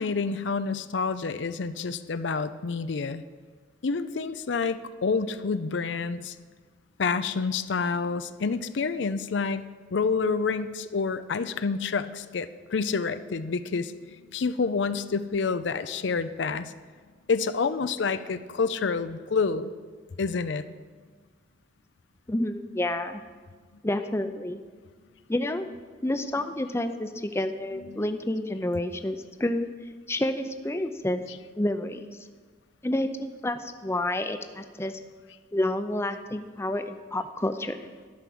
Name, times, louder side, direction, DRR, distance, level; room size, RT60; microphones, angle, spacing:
voice 1, 0.0-3.2 3.8-6.4 7.0-9.6 9.9-16.7 17.3-19.7 20.2-20.6 27.9-28.0, left 4 dB, 70° left, 12 dB, 0.5 m, -28 dB
voice 2, 22.3-23.2 23.8-24.6 25.3-25.7 26.0-29.7 30.1-31.2 31.6-32.2 32.8-35.0 35.5-37.8, left 1 dB, 15° left, 8 dB, 0.5 m, -29 dB
11.5 x 6.1 x 8.6 m, 1.5 s
head